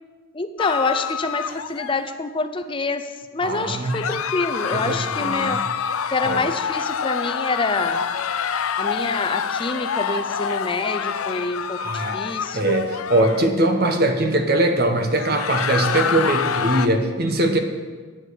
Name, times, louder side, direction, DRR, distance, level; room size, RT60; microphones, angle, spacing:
voice 1, 0.3-3.1 3.3-5.6 6.1-8.0 8.8-12.9, left 3 dB, 25° left, 9 dB, 0.5 m, -26 dB
sound 1, 0.6-2.1 3.9-13.5 15.2-16.9, left 7 dB, 85° left, 0.5 m, -26 dB
voice 2, 3.4-4.2 4.7-5.6 6.2-6.6 11.8-12.2 12.5-17.6, right 1 dB, 50° right, 6 dB, 1.1 m, -21 dB
10.0 x 7.7 x 6.4 m, 1.4 s
head